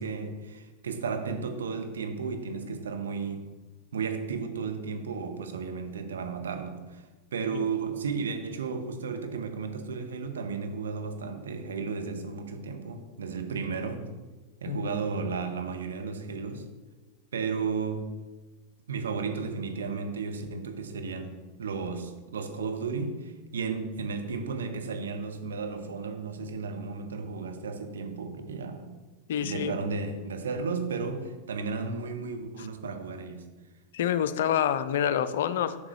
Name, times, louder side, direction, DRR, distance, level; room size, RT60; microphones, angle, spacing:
voice 1, 0.0-3.5 3.9-7.0 7.3-14.0 14.6-16.6 17.3-18.1 18.9-29.0 29.4-33.4, right 5 dB, 65° right, 6 dB, 0.9 m, -34 dB
voice 2, 29.3-29.8 33.9-35.8, left 9 dB, 60° left, 12 dB, 0.4 m, -27 dB
7.5 x 6.1 x 3.1 m, 1.2 s
figure-of-eight pair, 90°, 0 cm